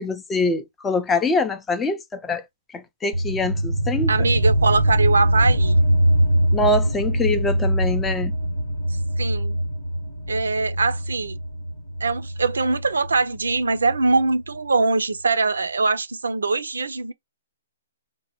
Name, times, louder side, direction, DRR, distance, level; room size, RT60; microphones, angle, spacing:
voice 1, 0.0-2.4 2.7-4.1 6.5-8.3, left 2 dB, 10° left, 0.4 m, -24 dB
sound 1, 3.1-14.2, right 1 dB, 85° left, 1.0 m, -22 dB
voice 2, 4.1-5.8 8.9-9.6 10.3-11.4 12.0-17.1, right 3 dB, 85° right, 0.4 m, -22 dB
3.7 x 2.1 x 2.8 m
hypercardioid pair, 140°, 0 cm